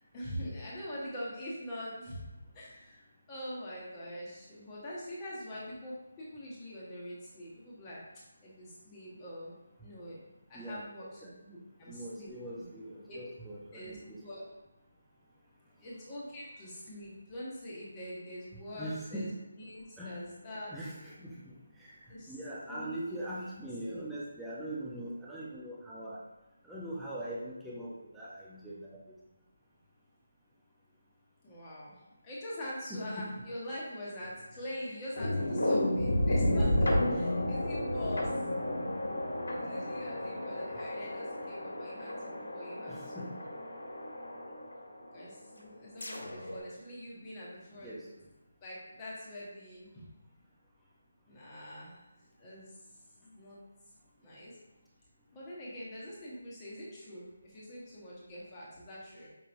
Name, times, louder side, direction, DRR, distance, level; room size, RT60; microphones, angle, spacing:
voice 1, 0.1-2.3 2.5-8.0 8.4-9.5 9.8-10.2 10.5-12.7 13.1-13.2 13.7-14.4 15.8-19.3 19.5-20.8 22.1-22.4 22.7-23.2 23.8-24.1 31.4-31.9 32.2-38.3 39.5-43.3 45.0-48.1 48.6-50.0 51.3-52.0 52.4-52.7 53.2-53.6 54.2-54.6 55.3-59.3, equal, 15° left, -8 dB, 1.1 m, -44 dB
voice 2, 11.8-14.2 18.7-19.3 20.0-20.3 20.7-21.5 22.3-26.2 26.6-29.0 32.9-33.3 42.9-43.3 47.8-48.0, right 1 dB, ahead, -9 dB, 0.5 m, -41 dB
sound 1, 35.2-45.2 45.8-46.6, left 1 dB, 80° left, 1.0 m, -32 dB
5.5 x 2.9 x 2.6 m, 1.1 s
figure-of-eight pair, 165°, 0 cm